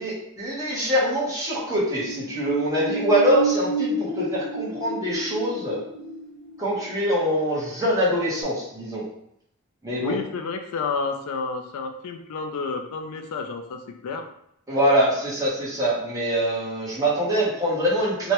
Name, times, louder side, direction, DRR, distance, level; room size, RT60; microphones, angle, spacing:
voice 1, 0.0-5.8 6.6-9.0 9.8-10.1 14.7-18.3, equal, 15° right, -8 dB, 0.9 m, -24 dB
sound 1, 1.7-8.0 8.4-8.5, right 3 dB, 45° left, 0.6 m, -31 dB
voice 2, 10.0-14.3, left 4 dB, 80° left, 6 dB, 0.4 m, -30 dB
2.9 x 2.2 x 2.9 m, 0.74 s
head